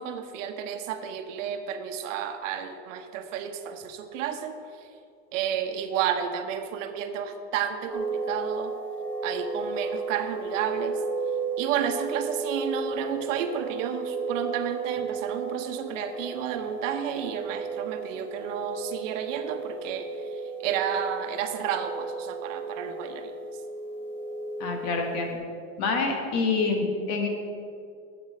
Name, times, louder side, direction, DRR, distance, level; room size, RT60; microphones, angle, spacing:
voice 1, 0.0-4.6 5.3-8.7 9.2-11.0 11.6-20.1 20.6-23.3, right 8 dB, 70° right, 7 dB, 1.1 m, -31 dB
sound 1, 7.9-25.4, right 4 dB, 5° left, 0.8 m, -34 dB
voice 2, 24.6-25.4 25.8-27.3, left 4 dB, 40° left, 3 dB, 1.6 m, -26 dB
7.9 x 7.4 x 7.6 m, 2.4 s
supercardioid pair, 175°, 39 cm